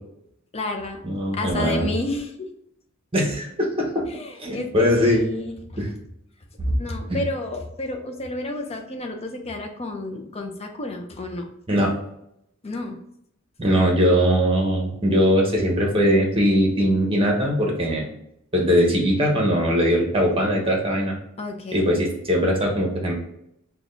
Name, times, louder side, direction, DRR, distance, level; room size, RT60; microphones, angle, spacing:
voice 1, 0.5-1.0 1.3-2.5 4.1-5.8 6.8-11.5 12.6-13.0 21.4-21.8, left 2 dB, 30° left, 3 dB, 0.6 m, -31 dB
voice 2, 1.0-1.9 3.1-4.0 4.4-5.2 5.8-5.9 6.6-6.7 7.1-7.2 11.7-11.9 13.6-18.1 18.5-21.2 21.7-23.1, equal, 25° right, 0 dB, 1.0 m, -20 dB
5.9 x 2.3 x 2.6 m, 0.77 s
head